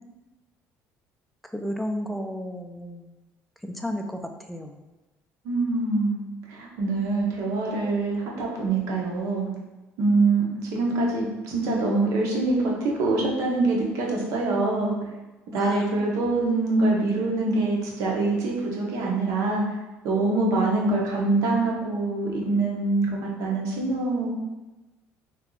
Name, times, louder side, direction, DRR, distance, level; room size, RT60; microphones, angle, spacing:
voice 1, 1.5-3.1 3.6-4.8 15.5-15.9, equal, ahead, 4 dB, 0.3 m, -33 dB
voice 2, 5.4-6.2 6.5-9.5 10.0-10.5 10.7-14.9 15.5-19.6 20.0-24.3, right 3 dB, 75° right, -2 dB, 0.9 m, -24 dB
2.7 x 2.3 x 3.8 m, 1.1 s
cardioid pair, 130°, 6 cm